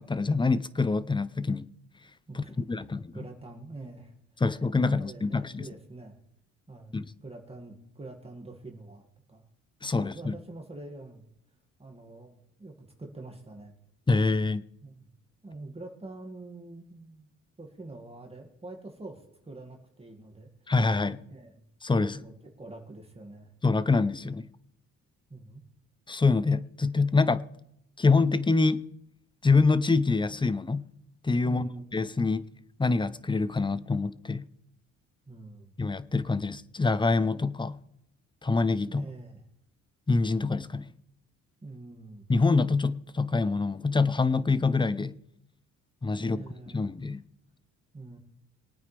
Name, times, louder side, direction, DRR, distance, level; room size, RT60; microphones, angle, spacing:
voice 1, 0.0-1.7 2.3-2.4 2.7-3.1 4.4-5.7 6.9-7.1 9.8-10.3 14.1-14.7 20.7-21.2 21.8-22.2 23.6-24.5 26.1-27.5 28.0-28.9 29.4-30.9 31.2-32.4 32.8-34.5 35.8-37.8 38.4-39.0 40.1-40.9 42.3-45.2 46.0-46.4 46.7-47.2, left 3 dB, 15° left, 0.7 m, -25 dB
voice 2, 2.3-2.9 3.1-4.1 5.0-6.1 6.7-9.5 10.0-11.3 11.8-13.7 14.8-15.1 15.4-17.3 17.6-20.7 21.3-21.7 22.1-23.5 25.3-25.6 31.4-32.1 35.3-35.7 38.9-39.4 41.6-42.3 46.2-46.9 47.9-48.2, right 2 dB, 20° right, 2.2 m, -45 dB
22.5 x 9.2 x 3.4 m
cardioid pair, 90°, 30 cm